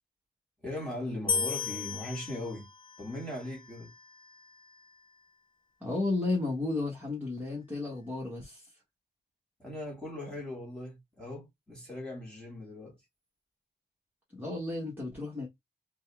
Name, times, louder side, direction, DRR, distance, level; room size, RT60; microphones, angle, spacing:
voice 1, 0.6-2.7 3.0-3.9 9.6-13.0, left 1 dB, 5° left, 2.3 m, -39 dB
sound 1, 1.3-4.5, left 5 dB, 30° left, 0.5 m, -36 dB
voice 2, 5.8-8.7 14.3-15.5, left 2 dB, 10° right, 1.4 m, -33 dB
3.9 x 2.3 x 3.6 m
wide cardioid pair, 135°, 17 cm